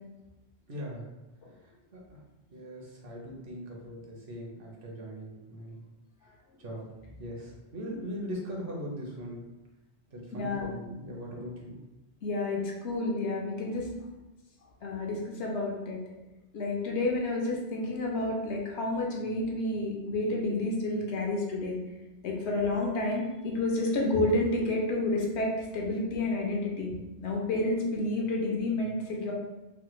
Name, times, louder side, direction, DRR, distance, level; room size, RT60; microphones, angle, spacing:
voice 1, 0.7-1.1 1.6-2.2 2.5-5.8 6.6-9.4 10.1-11.8, equal, 60° right, -2 dB, 0.8 m, -40 dB
voice 2, 10.3-10.7 12.2-13.9 14.8-16.0 16.5-21.8 22.2-26.9 27.2-29.3, left 2 dB, 80° left, -1 dB, 1.0 m, -30 dB
3.3 x 2.1 x 3.0 m, 1.0 s
omnidirectional pair, 1.1 m